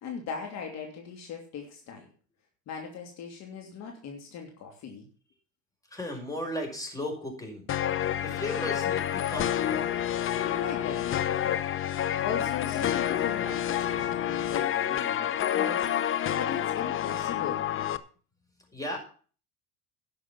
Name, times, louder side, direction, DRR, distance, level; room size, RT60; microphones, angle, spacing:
voice 1, 0.0-2.1 2.7-5.1 10.4-11.6 12.2-16.0 16.4-17.6, left 6 dB, 60° left, 3 dB, 2.8 m, -38 dB
voice 2, 5.9-7.7 8.2-10.1 18.7-19.0, left 1 dB, 10° left, 2 dB, 5.6 m, -35 dB
sound 1, 7.7-18.0, left 10 dB, 40° left, 0.9 m, -28 dB
11.5 x 7.0 x 7.2 m, 0.40 s
supercardioid pair, 90°, 31 cm